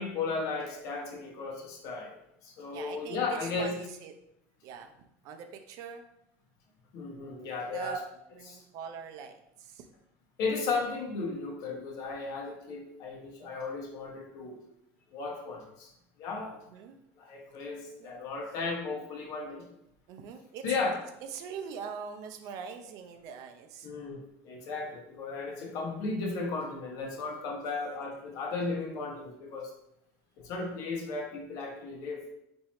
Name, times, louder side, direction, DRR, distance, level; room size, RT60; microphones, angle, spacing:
voice 1, 0.0-3.8 6.9-8.0 8.5-8.6 10.4-14.6 15.1-15.9 16.2-16.6 17.2-19.7 20.6-21.0 23.8-29.7 30.4-32.2, left 4 dB, 55° left, 0 dB, 0.9 m, -35 dB
voice 2, 2.7-4.1 4.6-4.9 5.2-6.0 7.7-8.1 8.3-9.9 16.7-17.0 18.0-18.3 20.1-20.6 21.3-23.9 25.5-25.8, right 6 dB, 55° right, 6 dB, 0.5 m, -42 dB
2.9 x 2.6 x 4.3 m, 0.80 s
cardioid pair, 135°, 7 cm